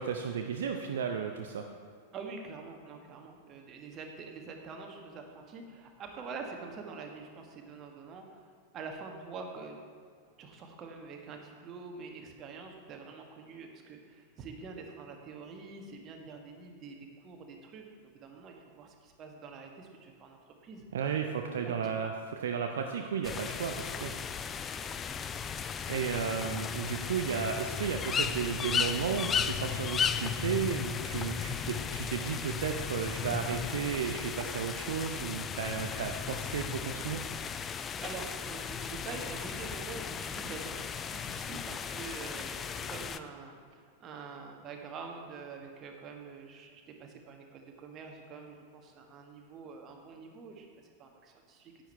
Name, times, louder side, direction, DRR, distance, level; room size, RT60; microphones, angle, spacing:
voice 1, 0.0-1.6 20.9-24.2 25.9-37.2, right 7 dB, 60° right, 4 dB, 0.6 m, -34 dB
voice 2, 2.1-8.4 8.7-9.8 10.4-20.8 21.6-21.9 23.9-24.1 24.7-25.1 37.7-51.7, right 4 dB, 30° right, 2 dB, 1.5 m, -46 dB
Female Tawny in the rain, 23.2-43.2, left 7 dB, 25° left, 0.4 m, -35 dB
10.0 x 9.1 x 4.4 m, 2.1 s
figure-of-eight pair, 90°, 0 cm